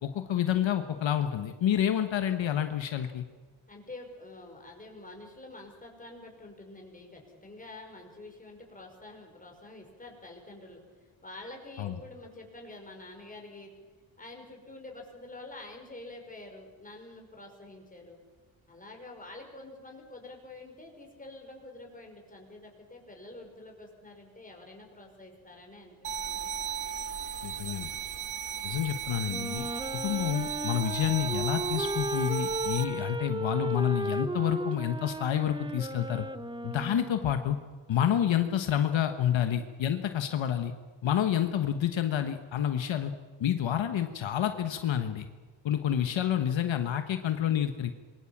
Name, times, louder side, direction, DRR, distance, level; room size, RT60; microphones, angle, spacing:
voice 1, 0.0-3.2 11.8-12.0 27.4-27.9 28.6-29.7 30.0-36.3 36.6-37.6 37.9-40.7 41.0-43.1 43.4-45.3 45.6-47.9, left 10 dB, 70° left, 7 dB, 1.4 m, -28 dB
voice 2, 3.7-13.7 14.2-18.2 18.7-26.5, left 2 dB, 15° left, 1 dB, 5.6 m, -47 dB
sound 1, 26.0-32.8, right 8 dB, 90° right, 1.9 m, -35 dB
Wind instrument woodwind instrument, 29.3-37.6, right 1 dB, 10° right, 0.9 m, -35 dB
26.5 x 22.5 x 7.4 m, 1.4 s
cardioid pair, 115°, 47 cm